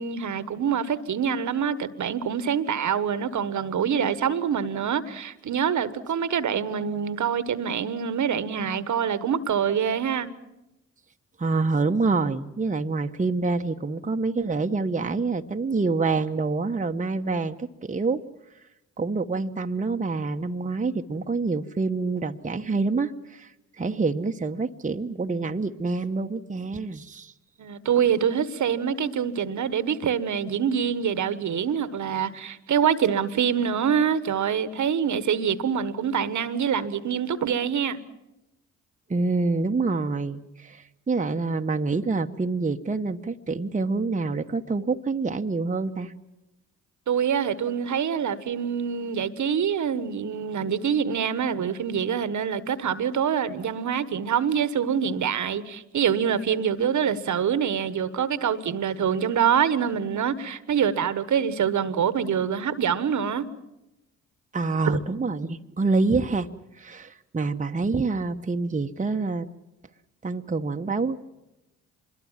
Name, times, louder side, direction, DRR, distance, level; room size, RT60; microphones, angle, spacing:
voice 1, 0.0-10.3 27.6-38.0 47.1-63.5 64.8-65.0, right 8 dB, 55° right, 1.3 m, -25 dB
voice 2, 11.4-18.2 19.0-23.5 23.8-27.3 39.1-46.1 64.5-66.5 66.8-69.5 70.2-71.2, right 3 dB, 20° right, 1.1 m, -26 dB
25.0 x 22.0 x 7.4 m
hypercardioid pair, 45°, 35 cm